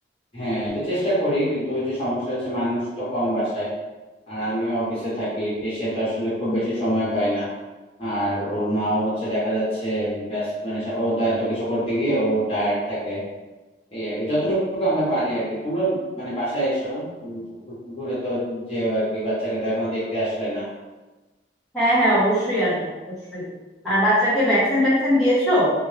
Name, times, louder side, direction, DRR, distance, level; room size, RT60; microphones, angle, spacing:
voice 1, 0.3-3.7 4.3-7.5 8.0-13.2 13.9-17.4 17.8-20.6, right 1 dB, 35° left, -9 dB, 1.1 m, -25 dB
voice 2, 21.7-23.5 23.8-25.7, equal, ahead, -13 dB, 1.3 m, -20 dB
3.4 x 2.6 x 3.3 m, 1.2 s
head